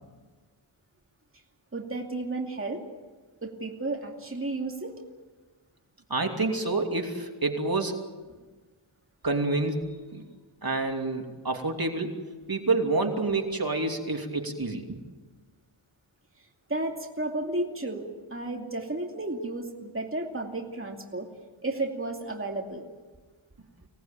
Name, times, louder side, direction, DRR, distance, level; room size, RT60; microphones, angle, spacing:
voice 1, 1.7-2.8 3.4-4.9 8.3-8.4 16.7-21.3 21.6-22.8, right 2 dB, 25° right, 1 dB, 2.6 m, -33 dB
voice 2, 6.1-8.0 9.2-10.3 10.6-12.2 12.5-15.0, right 3 dB, 45° right, 3 dB, 2.9 m, -28 dB
25.5 x 18.5 x 9.0 m, 1.3 s
wide cardioid pair, 75°, 49 cm